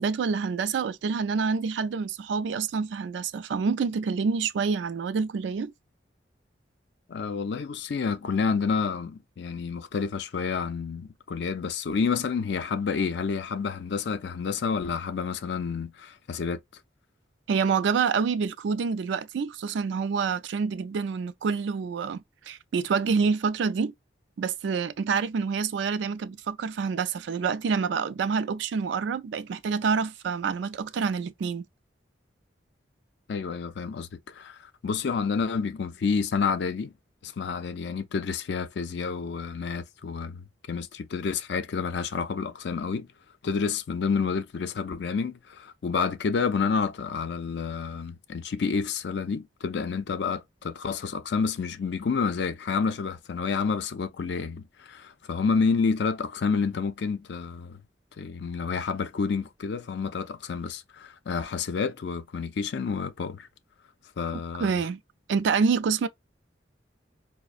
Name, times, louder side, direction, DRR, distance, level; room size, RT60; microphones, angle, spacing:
voice 1, 0.0-5.7 17.5-23.9 24.4-31.6 64.6-65.0 65.3-66.1, right 5 dB, 75° right, 0.3 m, -27 dB
voice 2, 7.1-16.6 33.3-36.9 37.2-43.1 43.4-57.8 58.2-63.5 64.2-64.7, left 5 dB, 65° left, 0.4 m, -29 dB
4.7 x 2.0 x 2.5 m
head